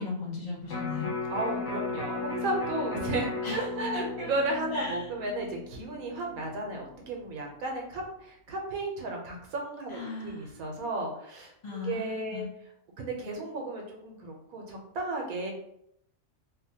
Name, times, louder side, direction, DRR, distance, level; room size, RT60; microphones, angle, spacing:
voice 1, 0.0-1.1 3.4-3.7 3.9-4.3 4.7-5.1 9.9-10.5 11.6-12.5, left 4 dB, 30° left, -5 dB, 0.5 m, -37 dB
Electric guitar, 0.7-6.9 7.3-7.4, left 3 dB, 70° left, 1.1 m, -36 dB
voice 2, 1.3-11.5 11.9-12.5 13.0-15.5, right 2 dB, 85° right, 0 dB, 1.2 m, -34 dB
2.8 x 2.2 x 2.7 m, 0.72 s
omnidirectional pair, 1.5 m